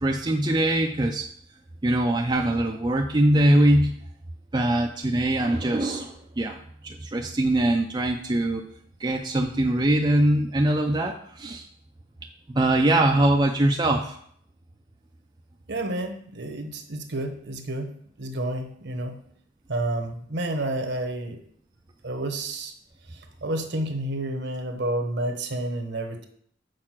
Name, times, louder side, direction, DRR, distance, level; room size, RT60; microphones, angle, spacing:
voice 1, 0.0-1.3 1.8-4.0 4.5-6.6 6.8-8.6 9.0-11.6 12.5-14.2, right 1 dB, 20° right, 2 dB, 0.4 m, -22 dB
voice 2, 15.7-17.9 18.2-19.2 19.7-21.4 22.0-22.7 23.1-26.3, right 1 dB, 55° right, 5 dB, 1.0 m, -30 dB
6.5 x 4.8 x 5.9 m, 0.64 s
head